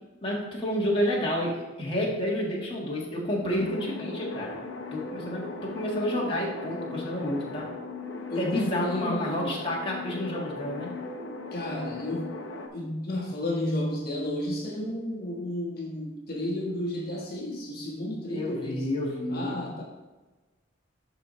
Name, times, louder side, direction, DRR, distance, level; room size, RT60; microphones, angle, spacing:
voice 1, 0.2-4.6 4.9-7.7 8.4-10.9 18.3-19.6, left 1 dB, 30° left, -4 dB, 1.6 m, -30 dB
sound 1, 3.6-12.7, left 3 dB, 80° left, 0.8 m, -38 dB
voice 2, 8.3-9.5 11.5-12.3 12.7-18.9 19.3-19.8, left 1 dB, 55° left, -3 dB, 1.3 m, -32 dB
12.0 x 4.1 x 3.1 m, 1.2 s
head